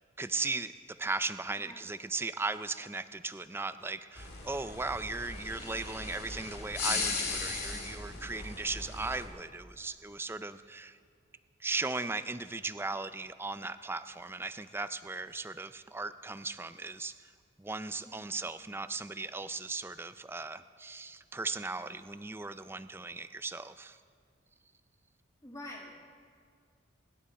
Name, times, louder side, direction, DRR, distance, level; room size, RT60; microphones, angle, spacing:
voice 1, 0.2-11.0 11.6-17.3 17.6-24.0, right 3 dB, 10° right, 12 dB, 0.4 m, -37 dB
sound 1, 4.2-9.2, left 4 dB, 55° left, 2.5 m, -37 dB
voice 2, 18.0-18.4 25.4-26.0, left 1 dB, 15° left, -2 dB, 1.6 m, -46 dB
28.5 x 11.5 x 4.2 m, 2.1 s
head